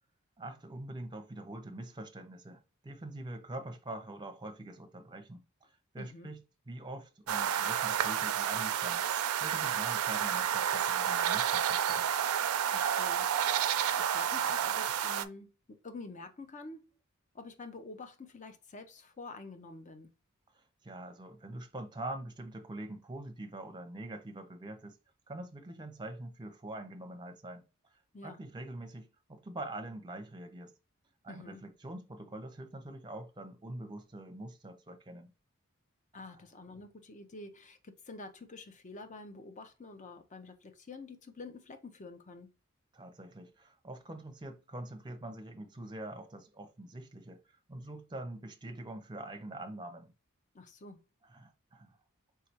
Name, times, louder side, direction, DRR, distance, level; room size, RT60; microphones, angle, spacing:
voice 1, 0.4-6.4 6.7-9.1 9.4-12.1 20.5-25.0 25.3-27.6 28.2-30.7 31.2-35.3 36.2-36.4 42.9-50.1 51.2-52.0, right 1 dB, 20° right, 0.7 m, -44 dB
voice 2, 6.0-6.3 12.7-13.3 13.6-15.5 15.8-16.8 17.3-20.1 28.1-28.4 31.3-31.6 36.1-42.5 50.5-51.0, left 3 dB, 35° left, 0.6 m, -48 dB
sound 1, 7.3-15.2, right 9 dB, 85° right, 0.4 m, -30 dB
4.6 x 3.3 x 2.8 m
head